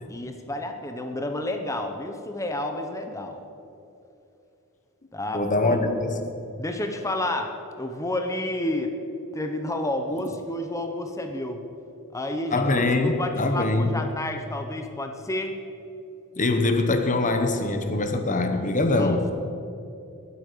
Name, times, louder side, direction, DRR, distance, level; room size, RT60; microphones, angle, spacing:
voice 1, 0.1-3.4 5.1-5.8 6.6-8.9 9.3-11.6 12.1-12.7 13.0-15.6 18.9-19.2, left 1 dB, 15° left, 4 dB, 1.0 m, -30 dB
voice 2, 5.3-6.2 12.5-14.0 16.4-19.3, left 2 dB, 35° left, 7 dB, 1.0 m, -23 dB
21.0 x 8.5 x 6.8 m, 2.8 s
head